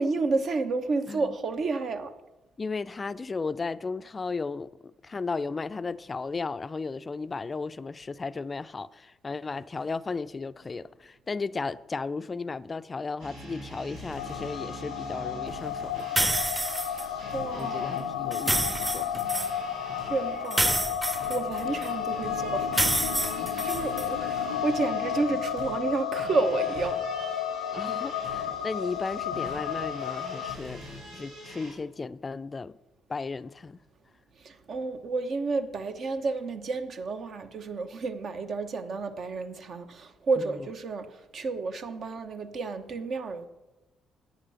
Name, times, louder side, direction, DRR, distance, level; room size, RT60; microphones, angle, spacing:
voice 1, 0.0-2.1 16.8-18.0 20.0-20.7 21.1-23.0 23.3-27.0 34.4-43.5, right 3 dB, 55° right, 1.0 m, -31 dB
voice 2, 2.6-16.1 17.4-19.2 19.9-20.0 23.4-23.7 27.7-30.8 31.1-32.8 33.1-33.8 40.4-40.5, left 4 dB, 35° left, 0.4 m, -35 dB
sound 1, 13.2-31.7, equal, 90° right, 4.8 m, -44 dB
sound 2, 14.2-30.6, left 8 dB, 90° left, 0.5 m, -32 dB
sound 3, 16.2-17.0 18.3-19.5 20.5-21.9 22.7-24.1, right 1 dB, 15° right, 0.8 m, -28 dB
9.9 x 8.7 x 5.8 m
hypercardioid pair, 50°, 0 cm